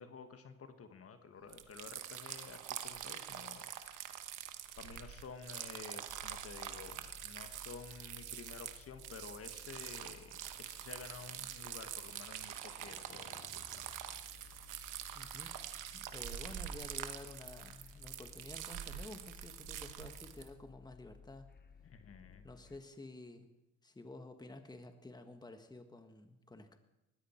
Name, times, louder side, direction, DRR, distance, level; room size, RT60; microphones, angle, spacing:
voice 1, 0.0-4.3 4.8-14.5 21.8-22.5, left 5 dB, 50° left, 8 dB, 1.5 m, -52 dB
sound 1, 1.5-20.5, right 11 dB, 90° right, 1.2 m, -45 dB
sound 2, 6.1-22.8, left 6 dB, 35° left, 0.9 m, -58 dB
voice 2, 15.1-15.6 15.9-21.5 22.4-23.5 23.8-26.8, left 2 dB, 15° left, 7 dB, 1.4 m, -51 dB
19.5 x 14.0 x 4.4 m, 0.98 s
cardioid pair, 90°, 30 cm